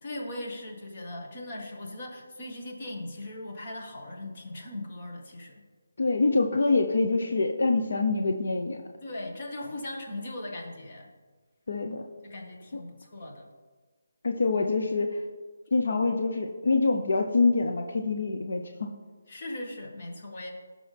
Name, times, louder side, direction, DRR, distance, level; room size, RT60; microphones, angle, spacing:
voice 1, 0.0-5.6 9.0-11.1 12.2-13.5 19.3-20.5, left 1 dB, 35° left, 0 dB, 1.7 m, -39 dB
voice 2, 6.0-8.8 11.7-12.0 12.7-12.8 14.2-15.2 15.7-18.9, left 3 dB, 65° left, 4 dB, 0.8 m, -25 dB
15.0 x 6.2 x 3.5 m, 1.4 s
hypercardioid pair, 170°, 0 cm